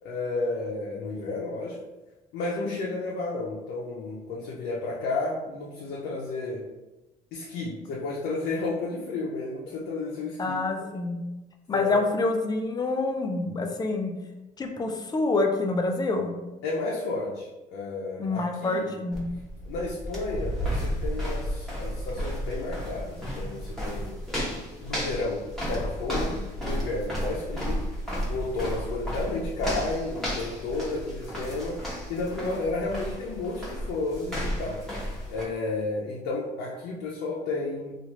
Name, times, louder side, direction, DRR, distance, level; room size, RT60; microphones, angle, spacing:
voice 1, 0.0-1.8 2.3-6.6 7.3-10.9 11.7-12.0 16.6-18.9 19.6-24.1 24.8-25.4 25.7-27.8 28.3-34.8 35.3-38.0, left 3 dB, 80° left, -4 dB, 0.6 m, -32 dB
voice 2, 10.4-11.2 11.7-14.1 14.6-16.3 18.2-19.3, left 3 dB, 25° left, 4 dB, 0.5 m, -27 dB
sound 1, 19.1-35.4, equal, ahead, 1.1 m, -33 dB
3.0 x 2.4 x 2.9 m, 1.0 s
cardioid pair, 110°, 17 cm